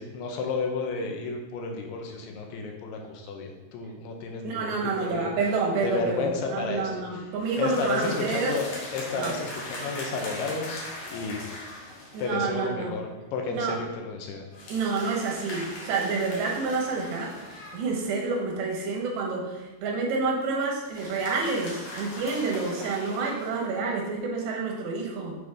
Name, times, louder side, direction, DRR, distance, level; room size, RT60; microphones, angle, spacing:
voice 1, 0.0-5.3 5.8-7.1 7.6-10.8 11.1-11.4 12.2-14.4, left 4 dB, 80° left, 2 dB, 2.6 m, -32 dB
voice 2, 4.4-8.6 9.1-9.4 12.1-12.9 13.5-13.8 14.7-17.4 17.7-25.4, right 4 dB, 90° right, -1 dB, 3.2 m, -28 dB
sound 1, 4.9-5.2 7.4-12.4 14.5-18.4 20.9-23.6, left 2 dB, 65° left, 2.2 m, -40 dB
7.8 x 3.6 x 3.4 m, 1.1 s
omnidirectional pair, 4.7 m